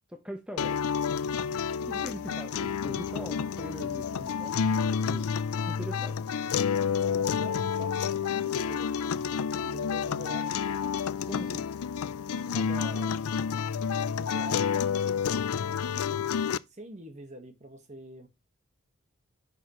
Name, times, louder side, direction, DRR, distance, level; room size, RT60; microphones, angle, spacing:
voice 1, 0.1-0.8 1.9-4.5 5.0-6.2 11.3-11.7, equal, 5° right, 1.0 m, -41 dB
sound 1, 0.6-16.6, left 7 dB, 85° left, 0.4 m, -29 dB
voice 2, 7.1-8.9 9.6-10.9 11.5-11.7 12.5-13.3 14.0-14.9 15.2-18.3, right 1 dB, 30° right, 1.5 m, -46 dB
10.5 x 6.6 x 3.1 m
head